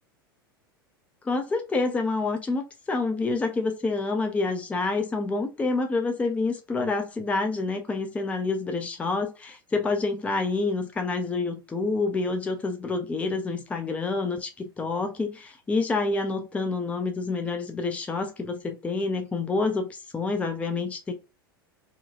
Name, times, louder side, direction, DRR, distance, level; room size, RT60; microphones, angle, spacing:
voice 1, 1.2-21.1, left 3 dB, 10° left, 0.5 m, -28 dB
2.9 x 2.2 x 2.4 m
figure-of-eight pair, 85°, 12 cm